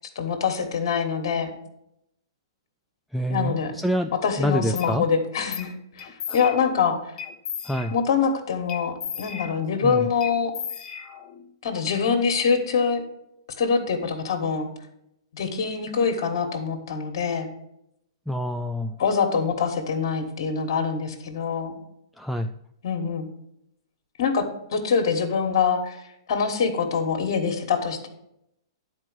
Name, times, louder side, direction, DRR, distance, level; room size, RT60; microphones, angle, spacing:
voice 1, 0.1-1.5 3.3-3.7 4.2-7.0 7.9-10.5 11.6-13.0 13.6-14.7 15.3-17.5 19.0-21.8 22.8-23.3 24.2-24.5 24.7-26.0 26.3-28.1, left 6 dB, 60° left, 5 dB, 1.6 m, -24 dB
voice 2, 3.1-5.1 6.3-6.4 7.6-7.9 9.8-10.1 18.3-19.0 22.2-22.5, equal, ahead, 6 dB, 0.4 m, -27 dB
sound 1, 4.8-4.9 5.5-5.7 6.0-6.8 7.2-8.2 8.7-9.8 10.2-11.4, left 8 dB, 25° left, 1.0 m, -36 dB
10.0 x 4.5 x 6.3 m, 0.79 s
hypercardioid pair, 120°, 3 cm